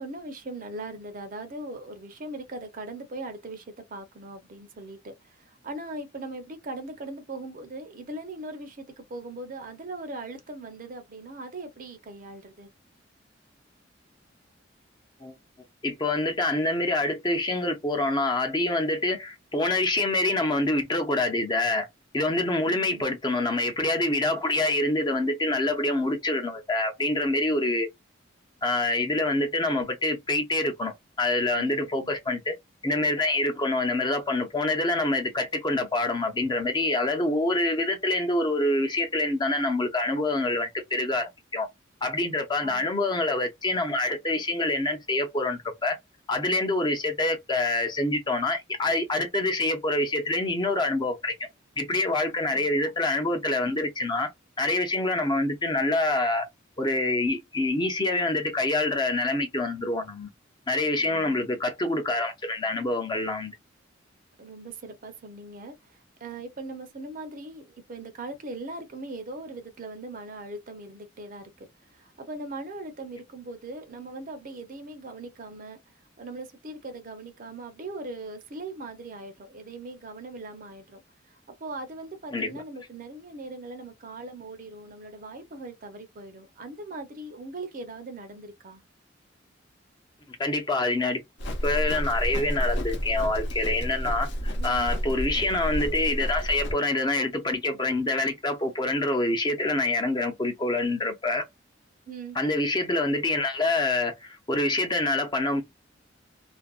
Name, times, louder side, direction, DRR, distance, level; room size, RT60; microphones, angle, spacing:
voice 1, 0.0-12.7 22.6-23.1 31.6-32.1 42.6-43.2 52.5-52.7 61.0-61.5 64.4-75.8 76.2-81.0 81.3-88.8 94.6-94.9 102.1-102.4, right 2 dB, 45° right, 0.6 m, -40 dB
voice 2, 15.8-21.9 22.1-27.9 28.6-32.5 32.8-41.7 42.0-46.0 46.3-51.4 51.8-54.3 54.6-56.5 56.8-60.3 60.7-63.5 82.3-82.5 90.4-91.2 91.6-101.4 102.4-105.6, left 2 dB, 25° left, 0.5 m, -26 dB
Livestock farm animals working animals, 91.4-96.7, equal, 65° left, 0.7 m, -30 dB
2.5 x 2.1 x 2.3 m
head